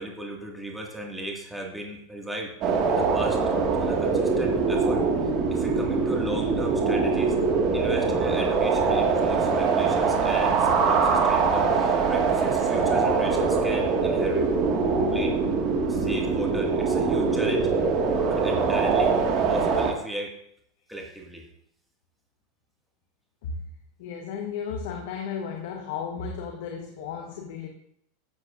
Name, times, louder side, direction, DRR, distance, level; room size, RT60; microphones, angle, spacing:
voice 1, 0.0-5.1 5.5-7.4 7.7-14.5 15.1-15.4 15.9-17.7 18.3-19.2 19.5-20.3 20.9-21.5, right 1 dB, 5° right, -1 dB, 1.9 m, -36 dB
sound 1, 2.6-19.9, right 4 dB, 45° right, 1.7 m, -23 dB
voice 2, 24.0-27.7, left 6 dB, 65° left, 3 dB, 1.1 m, -34 dB
12.5 x 7.6 x 2.5 m, 0.70 s
hypercardioid pair, 100°, 0 cm